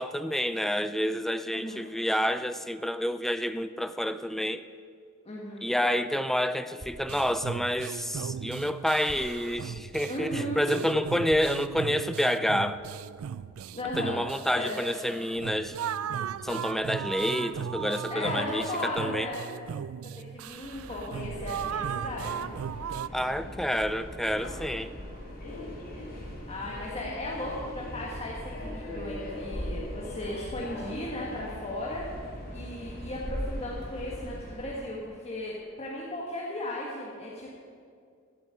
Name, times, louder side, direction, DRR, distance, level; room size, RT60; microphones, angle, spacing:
voice 1, 0.0-4.6 5.6-12.8 14.0-15.8 16.4-19.3 23.1-24.9, equal, ahead, 12 dB, 0.4 m, -29 dB
voice 2, 1.5-1.9 5.3-5.7 10.1-10.8 13.7-14.2 14.5-14.8 16.1-16.4 18.1-19.6 20.2-22.5 23.4-23.5 26.5-37.5, left 1 dB, 30° left, -4 dB, 1.7 m, -36 dB
sound 1, 5.5-12.5, equal, 45° right, 2.8 m, -54 dB
A Silly Vocal Tune, 7.1-23.1, right 8 dB, 85° right, 0.4 m, -37 dB
Subway metro underground, 20.5-34.8, left 1 dB, 50° left, 4.1 m, -39 dB
14.5 x 7.7 x 8.8 m, 2.2 s
head